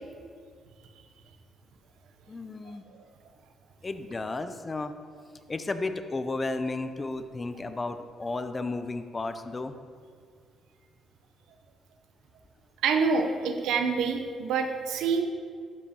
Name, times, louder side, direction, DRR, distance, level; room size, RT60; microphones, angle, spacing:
voice 1, 2.3-2.8 3.8-4.9 5.5-9.7, left 3 dB, 25° left, 9 dB, 0.5 m, -33 dB
voice 2, 12.8-15.2, right 5 dB, 85° right, 5 dB, 0.8 m, -26 dB
12.0 x 7.2 x 2.9 m, 2.1 s
cardioid pair, 90°, 0 cm